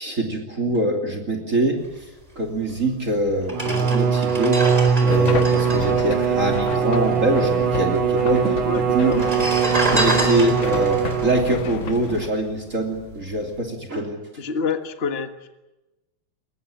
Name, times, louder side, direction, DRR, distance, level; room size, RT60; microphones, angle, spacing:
voice 1, 0.0-1.8 2.4-4.7 5.0-9.2 9.9-14.2, right 1 dB, 40° right, 3 dB, 3.2 m, -24 dB
sound 1, 2.8-2.9 3.4-7.1 7.4-7.5 7.6-8.3 9.0-12.5 13.0-13.2, right 1 dB, 15° right, 4.3 m, -28 dB
Bowed string instrument, 3.5-11.8, right 7 dB, 70° right, 2.3 m, -21 dB
sound 2, 5.1-12.3, left 6 dB, 75° left, 2.1 m, -31 dB
voice 2, 8.6-9.3 14.4-15.5, left 5 dB, 30° left, 8 dB, 1.6 m, -27 dB
23.5 x 20.0 x 9.0 m, 1.0 s
omnidirectional pair, 2.3 m